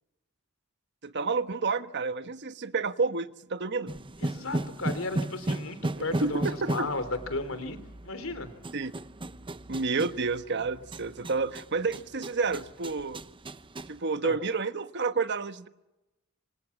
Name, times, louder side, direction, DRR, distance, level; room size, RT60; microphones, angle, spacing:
voice 1, 1.0-3.9 6.0-6.9 8.7-8.9 9.7-13.2 13.9-15.7, right 4 dB, 60° right, 11 dB, 1.3 m, -30 dB
sound 1, 3.9-14.0, right 1 dB, 25° right, 0.9 m, -36 dB
voice 2, 4.2-7.8 8.0-8.5 14.2-14.4, left 2 dB, 75° left, 11 dB, 3.4 m, -34 dB
27.0 x 26.0 x 7.3 m, 0.98 s
head